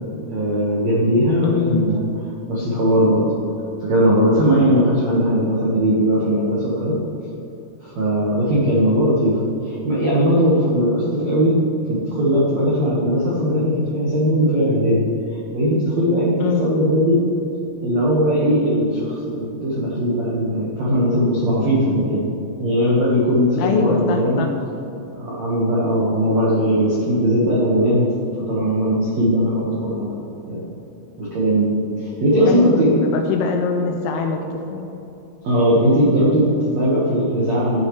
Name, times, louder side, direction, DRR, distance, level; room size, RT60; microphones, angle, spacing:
voice 1, 0.3-2.0 2.5-3.2 3.8-7.0 7.8-9.4 9.6-11.6 11.8-15.0 15.5-17.2 17.8-22.2 22.6-24.5 25.1-28.1 28.4-30.2 30.5-30.6 31.2-33.0 35.4-37.8, equal, 85° right, -6 dB, 1.5 m, -19 dB
voice 2, 1.4-1.9 16.4-16.7 23.6-24.5 32.5-34.9, left 5 dB, 85° left, 4 dB, 2.7 m, -23 dB
13.5 x 9.8 x 3.2 m, 2.9 s
omnidirectional pair, 5.8 m